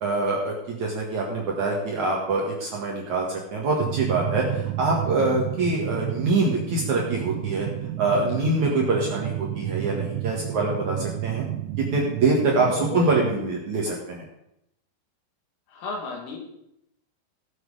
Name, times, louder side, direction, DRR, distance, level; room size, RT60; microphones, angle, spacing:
voice 1, 0.0-7.7 8.0-11.5 11.8-14.2, right 3 dB, 55° right, -2 dB, 2.3 m, -25 dB
sound 1, 3.8-13.3, right 13 dB, 85° right, 3.5 m, -31 dB
voice 2, 12.6-13.5 15.7-16.4, left 3 dB, 85° left, 0 dB, 5.2 m, -34 dB
17.5 x 7.8 x 4.9 m, 0.80 s
omnidirectional pair, 5.7 m